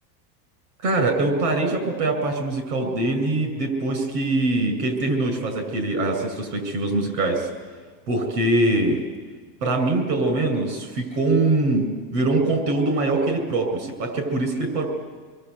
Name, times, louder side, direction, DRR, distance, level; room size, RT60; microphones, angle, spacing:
voice 1, 0.8-7.5 8.1-9.0 9.6-11.9 12.1-14.9, right 2 dB, 70° right, 6 dB, 6.9 m, -23 dB
26.0 x 22.5 x 8.2 m, 1.5 s
supercardioid pair, 120°, 49 cm